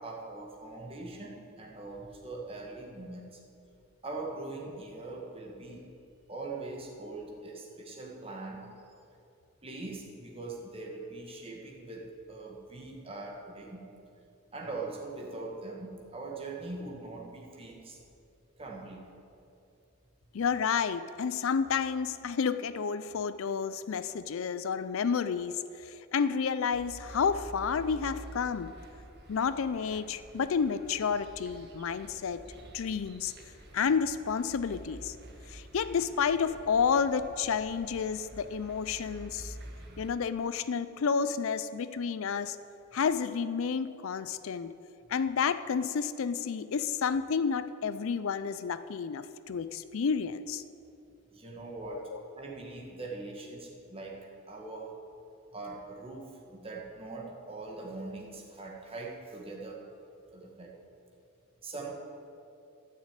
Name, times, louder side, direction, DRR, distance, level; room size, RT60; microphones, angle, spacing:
voice 1, 0.0-3.4 4.0-5.9 6.3-8.7 9.6-13.8 14.5-18.0 18.6-19.1 51.3-55.0 55.5-59.9 60.3-60.7 61.6-61.9, right 3 dB, 25° right, -1 dB, 1.8 m, -42 dB
voice 2, 20.3-25.5 25.8-28.7 29.3-32.4 32.7-33.3 33.7-35.1 35.5-39.5 40.0-42.6 42.9-44.7 45.1-50.6 51.9-52.2, left 6 dB, 65° left, 13 dB, 0.4 m, -30 dB
sound 1, 26.7-40.1, right 1 dB, 50° right, 1.6 m, -49 dB
13.0 x 6.6 x 8.8 m, 2.6 s
head